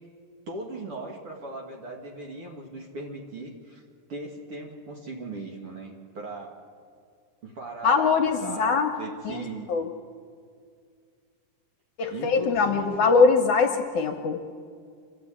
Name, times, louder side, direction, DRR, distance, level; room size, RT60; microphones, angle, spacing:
voice 1, 0.5-3.8 4.1-6.6 7.4-9.7 12.1-13.1, right 2 dB, 50° right, 0 dB, 2.1 m, -38 dB
voice 2, 7.8-8.9 9.3-9.4 9.7-9.9 12.0-14.5, left 4 dB, 65° left, 4 dB, 2.2 m, -22 dB
26.0 x 13.0 x 8.6 m, 2.2 s
omnidirectional pair, 4.2 m